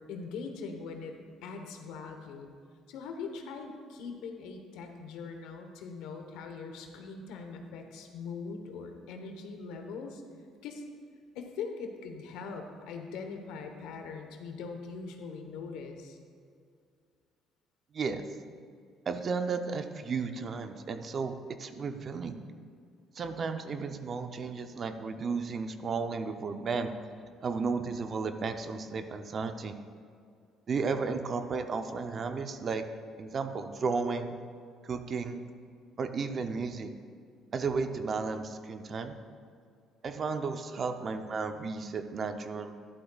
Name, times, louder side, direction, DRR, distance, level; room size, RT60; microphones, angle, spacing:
voice 1, 0.0-2.5 2.9-10.2 10.6-10.8 11.3-16.2, left 5 dB, 85° left, 4 dB, 1.1 m, -41 dB
voice 2, 19.1-22.4 23.1-26.9 27.4-29.8 30.7-32.9 33.2-34.4 34.8-35.4 36.0-36.9 37.5-39.2 40.0-42.7, right 4 dB, 40° right, 8 dB, 0.6 m, -33 dB
11.5 x 11.5 x 2.4 m, 2.2 s
cardioid pair, 110°, 0 cm